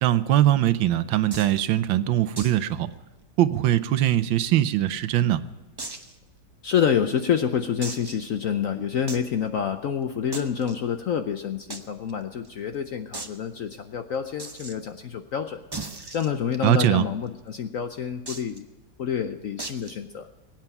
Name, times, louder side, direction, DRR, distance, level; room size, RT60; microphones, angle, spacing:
voice 1, 0.0-2.9 3.4-5.4 16.6-17.0, right 12 dB, 85° right, 14 dB, 1.5 m, -21 dB
sound 1, 1.3-1.6 2.4-2.6 2.9-3.0 3.4-3.5 4.1-4.9 5.8-6.1 6.7-6.8 7.8-8.3 9.1-9.3 10.3-10.8 11.7-11.8 12.1-12.2 12.4-12.5 13.1-13.4 14.4-14.7 15.7-16.8 18.3-18.6 19.6-20.0, right 3 dB, 30° right, 0.4 m, -37 dB
voice 2, 6.6-15.6 16.1-18.7 19.0-20.3, left 8 dB, 65° left, 8 dB, 0.8 m, -27 dB
22.0 x 9.0 x 5.8 m, 1.2 s
omnidirectional pair, 2.1 m